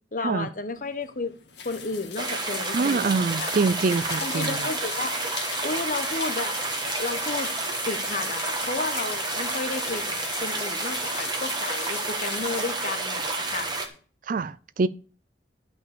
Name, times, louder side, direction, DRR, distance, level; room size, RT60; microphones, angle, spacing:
voice 1, 0.1-1.3 1.6-3.5 4.2-5.2 5.6-6.5 7.0-7.5 7.8-13.7, left 3 dB, 45° left, 1.1 m, -32 dB
sound 1, 0.7-14.0, left 8 dB, 65° left, 1.8 m, -38 dB
sound 2, 2.2-13.9, right 3 dB, 25° right, 1.5 m, -30 dB
voice 2, 2.7-4.7 14.3-14.9, right 4 dB, 45° right, 0.4 m, -25 dB
11.0 x 5.3 x 7.0 m
head